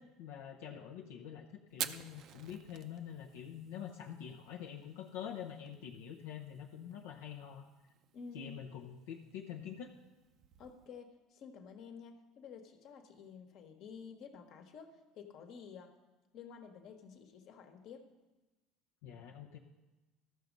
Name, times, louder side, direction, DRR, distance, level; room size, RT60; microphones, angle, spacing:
voice 1, 0.0-7.6 8.3-10.0 19.0-19.6, left 9 dB, 85° left, 0 dB, 0.7 m, -46 dB
Fire, 1.7-10.9, right 9 dB, 55° right, 0.5 m, -50 dB
voice 2, 8.1-8.6 10.6-15.9 16.3-18.1, left 6 dB, 60° left, 5 dB, 1.3 m, -51 dB
13.5 x 6.2 x 5.3 m, 1.1 s
supercardioid pair, 100°, 0 cm